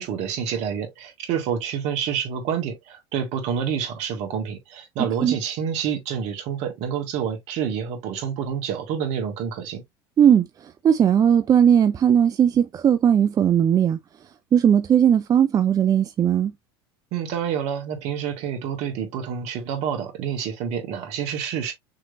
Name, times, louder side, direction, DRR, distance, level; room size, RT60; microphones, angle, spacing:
voice 1, 0.0-9.8 17.1-21.7, right 8 dB, 60° right, 1.9 m, -28 dB
voice 2, 10.2-14.0 14.5-16.5, right 9 dB, 30° right, 0.4 m, -18 dB
6.1 x 3.2 x 2.5 m
supercardioid pair, 100°, 12 cm